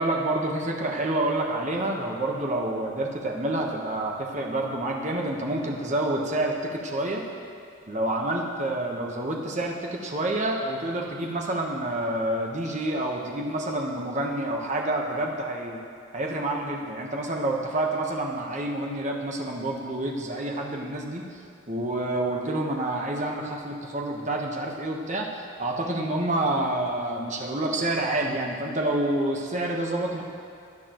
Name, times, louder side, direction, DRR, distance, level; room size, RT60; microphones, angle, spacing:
voice 1, 0.0-7.2 7.9-15.8 16.1-21.2 21.7-25.3 25.6-30.2, right 1 dB, 35° right, 0 dB, 1.2 m, -28 dB
17.0 x 9.8 x 3.1 m, 2.5 s
head